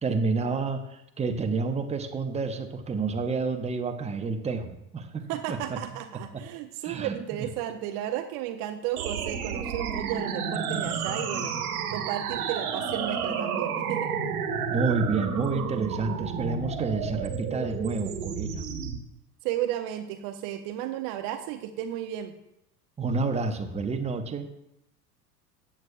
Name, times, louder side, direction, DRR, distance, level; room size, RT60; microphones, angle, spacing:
voice 1, 0.0-5.8 6.8-7.1 14.7-18.6 23.0-24.5, right 4 dB, 15° right, 5 dB, 1.0 m, -29 dB
voice 2, 5.3-11.6 11.9-14.1 19.4-22.3, right 12 dB, 45° right, 7 dB, 0.9 m, -33 dB
sound 1, 9.0-19.0, right 6 dB, 65° right, 1.6 m, -31 dB
14.0 x 8.9 x 2.5 m, 0.83 s
figure-of-eight pair, 75°, 48 cm